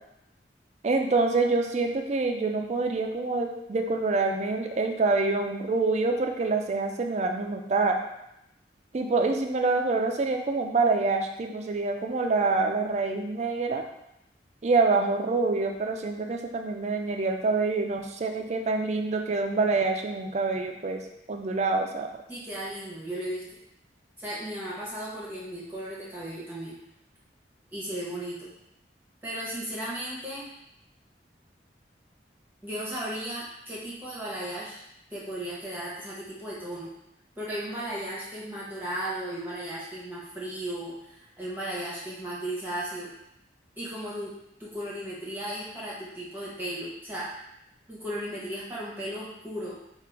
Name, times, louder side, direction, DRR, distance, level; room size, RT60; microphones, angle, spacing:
voice 1, 0.8-8.0 8.9-13.8 14.6-21.0 21.3-22.1, right 3 dB, 40° right, 3 dB, 0.4 m, -26 dB
voice 2, 22.3-23.4 24.2-26.8 27.7-28.5 29.2-30.5 32.6-34.8 35.1-36.9 37.4-43.1 43.8-44.3 44.6-47.3 47.9-49.8, right 1 dB, 10° right, -7 dB, 0.8 m, -35 dB
3.7 x 2.4 x 4.5 m, 0.82 s
head